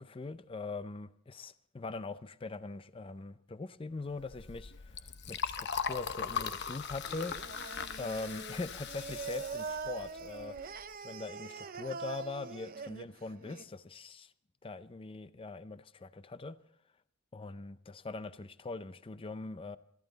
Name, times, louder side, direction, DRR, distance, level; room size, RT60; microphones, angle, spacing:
voice 1, 0.0-7.4 8.0-14.3 14.6-16.6 17.3-19.8, left 3 dB, 25° left, 0.5 m, -42 dB
Liquid, 4.1-10.8, left 6 dB, 55° left, 0.8 m, -40 dB
Singing, 7.1-13.6, right 4 dB, 45° right, 0.7 m, -43 dB
22.0 x 14.0 x 4.0 m
head